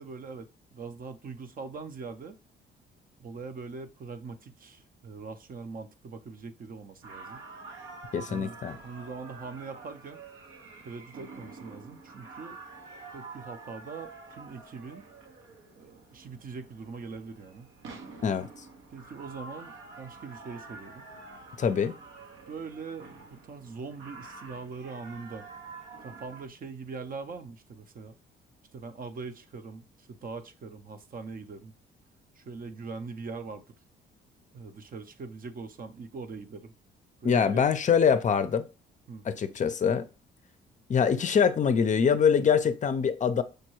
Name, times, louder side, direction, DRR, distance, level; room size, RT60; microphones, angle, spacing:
voice 1, 0.0-2.4 3.2-7.4 8.3-8.6 8.8-10.2 10.8-12.6 13.1-15.0 15.8-17.7 18.9-21.1 22.5-25.5 26.0-28.2 28.7-31.7 32.4-33.6 34.5-36.7 37.2-37.6 39.1-39.2, right 4 dB, 45° right, 0.6 m, -42 dB
sound 1, 7.0-26.5, right 3 dB, 90° right, 0.9 m, -48 dB
voice 2, 8.1-8.8 18.2-18.5 21.6-21.9 37.2-38.6 39.2-40.0 40.9-43.4, left 7 dB, 40° left, 0.5 m, -24 dB
6.5 x 2.2 x 3.0 m
cardioid pair, 90°, 20 cm